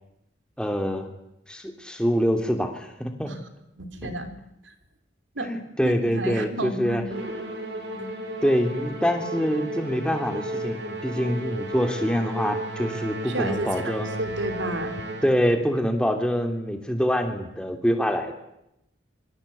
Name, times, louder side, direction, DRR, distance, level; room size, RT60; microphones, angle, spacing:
voice 1, 0.6-1.1 1.5-3.3 4.0-4.1 5.4-7.0 8.0-8.1 8.4-14.1 15.2-18.3, equal, 5° left, 4 dB, 3.0 m, -25 dB
voice 2, 3.8-4.3 5.4-5.5 5.8-7.1 13.3-13.9 14.2-15.0, right 2 dB, 85° right, 8 dB, 3.6 m, -31 dB
Musical instrument, 7.1-15.6, right 1 dB, 65° right, 6.0 m, -34 dB
26.5 x 24.5 x 8.6 m, 0.84 s
head